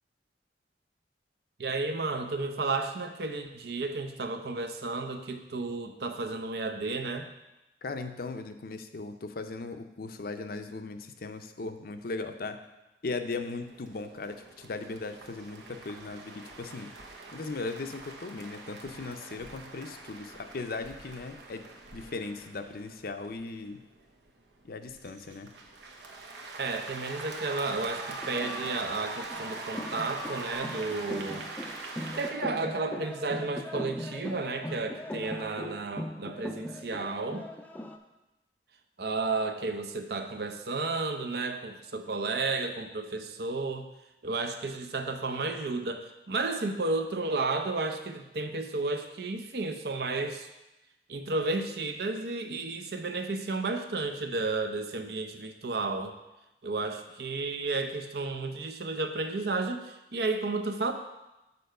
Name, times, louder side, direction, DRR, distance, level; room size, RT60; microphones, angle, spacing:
voice 1, 1.6-7.3 26.6-31.5 32.2-37.5 39.0-43.9 44.2-50.5 51.1-56.1 56.6-60.9, right 3 dB, 60° right, 7 dB, 0.6 m, -32 dB
voice 2, 7.8-12.6 13.0-16.9 17.3-21.6 21.9-23.8 24.6-25.5, left 3 dB, 55° left, 8 dB, 0.5 m, -38 dB
sound 1, 13.5-32.3, right 3 dB, 80° right, 1.0 m, -43 dB
sound 2, 28.2-38.0, left 1 dB, 10° left, 0.4 m, -40 dB
6.9 x 4.5 x 6.5 m, 0.99 s
head